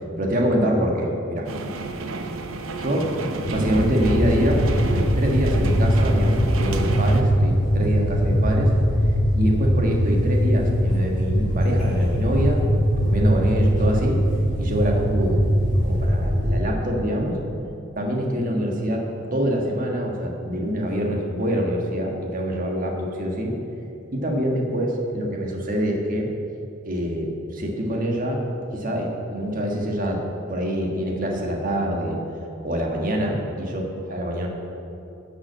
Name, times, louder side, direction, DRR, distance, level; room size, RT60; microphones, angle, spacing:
voice 1, 0.2-1.5 2.7-3.1 3.5-4.6 4.9-8.7 9.3-14.2 14.5-15.5 15.8-17.4 18.0-23.5 24.1-26.3 26.8-28.4 28.7-32.2 32.6-34.5, equal, 40° right, 0 dB, 1.5 m, -25 dB
sound 1, 1.4-7.2, right 3 dB, 70° right, 0.7 m, -31 dB
sound 2, 3.4-16.6, equal, 35° left, 2.3 m, -21 dB
10.5 x 6.0 x 7.6 m, 2.8 s
head